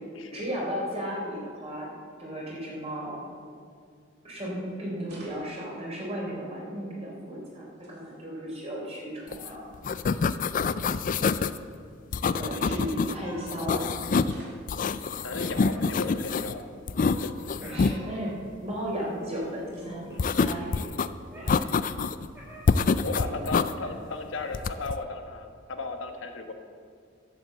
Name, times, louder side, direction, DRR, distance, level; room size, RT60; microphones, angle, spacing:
voice 1, 0.3-1.9 2.2-3.2 4.2-9.7 10.5-10.7 12.3-14.4 17.5-20.9 21.3-21.6 23.4-23.5 23.8-24.0, equal, 35° right, -3 dB, 3.8 m, -35 dB
sound 1, 3.4-3.6 5.0-5.6 7.4-8.2 9.3-9.4 9.6-9.9 11.0-11.1 12.2-13.1 14.2-14.9, right 2 dB, 60° right, 2.4 m, -53 dB
sound 2, 9.3-9.5 9.7-11.6 12.1-13.1 13.5-14.4 14.7-16.5 16.9-18.0 20.2-21.1 21.5-22.3 22.7-23.7 24.5-25.0, left 4 dB, 45° left, 0.4 m, -26 dB
Meow, 13.1-24.7, equal, 15° right, 3.9 m, -50 dB
voice 2, 15.2-16.7 23.0-26.5, left 3 dB, 80° left, 5 dB, 1.2 m, -35 dB
11.5 x 8.1 x 7.6 m, 2.2 s
head